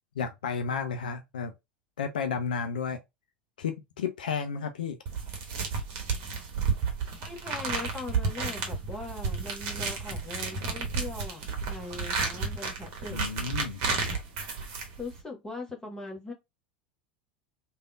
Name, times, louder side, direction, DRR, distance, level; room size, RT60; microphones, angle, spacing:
voice 1, 0.2-1.5 2.0-3.0 3.6-5.0 13.1-13.8, left 6 dB, 70° left, 0.4 m, -32 dB
sound 1, 5.1-15.2, right 4 dB, 50° right, 1.0 m, -32 dB
voice 2, 7.2-13.3 15.0-16.3, left 3 dB, 10° left, 1.1 m, -40 dB
3.3 x 2.4 x 2.4 m
figure-of-eight pair, 80°, 5 cm